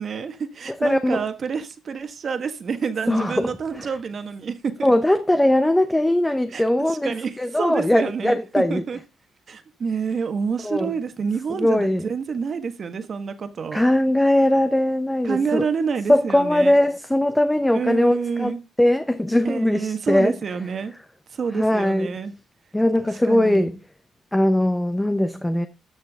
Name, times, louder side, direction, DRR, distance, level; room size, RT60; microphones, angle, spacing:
voice 1, 0.0-4.9 6.5-6.6 6.9-9.0 9.5-13.8 15.2-16.7 17.7-18.6 19.4-20.9 21.4-22.3 23.2-23.7, right 6 dB, 50° right, 1.5 m, -28 dB
voice 2, 0.8-1.2 3.1-3.9 4.8-8.8 10.6-10.9 11.5-12.1 13.7-15.6 16.1-20.3 21.5-22.1 22.7-23.8 24.3-25.7, left 1 dB, 10° left, 0.8 m, -20 dB
13.5 x 6.3 x 3.6 m
cardioid pair, 90°, 0 cm